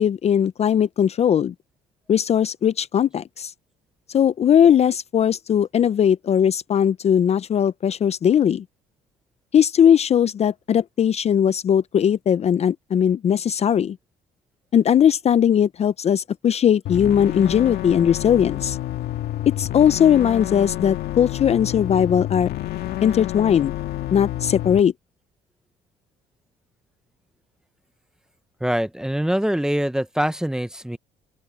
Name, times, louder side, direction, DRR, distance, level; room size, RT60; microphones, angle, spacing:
voice 1, 0.0-1.5 2.1-3.5 4.1-8.6 9.5-14.0 14.7-18.8 19.6-22.5 23.0-23.7 24.1-24.9, left 9 dB, 40° left, 0.5 m, -19 dB
sound 1, 16.9-24.8, left 14 dB, 70° left, 1.8 m, -29 dB
voice 2, 28.6-31.0, equal, 5° right, 0.7 m, -24 dB
open air
cardioid pair, 110°, 17 cm